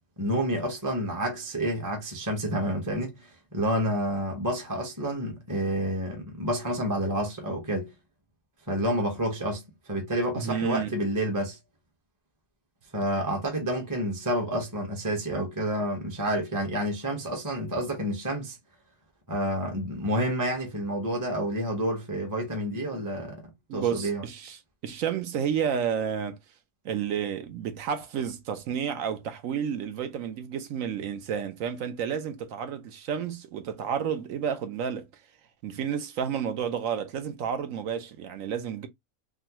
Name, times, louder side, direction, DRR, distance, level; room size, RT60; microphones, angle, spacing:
voice 1, 0.2-7.9 8.7-9.6 9.9-11.6 12.9-18.6 19.3-23.4 23.7-24.2, equal, 15° right, 0.8 m, -29 dB
voice 2, 10.4-10.9 23.7-26.4 26.8-35.1 35.6-38.9, right 8 dB, 70° right, 1.0 m, -31 dB
3.8 x 2.1 x 2.8 m
omnidirectional pair, 1.5 m